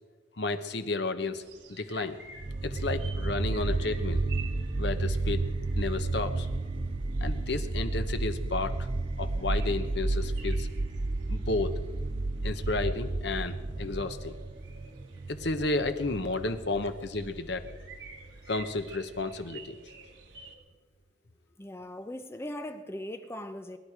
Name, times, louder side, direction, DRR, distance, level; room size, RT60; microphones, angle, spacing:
voice 1, 0.4-1.4 1.7-2.2 2.6-4.2 4.8-5.4 5.7-6.5 7.2-8.9 9.2-10.7 11.3-11.7 12.4-14.3 15.3-17.6 18.5-19.8, left 3 dB, 65° left, 1.0 m, -32 dB
sound 1, 1.4-20.6, right 5 dB, 80° right, 1.8 m, -52 dB
sound 2, 2.4-19.4, right 2 dB, 30° right, 0.5 m, -32 dB
voice 2, 21.6-23.8, left 1 dB, 15° left, 0.6 m, -39 dB
22.0 x 10.5 x 4.9 m
head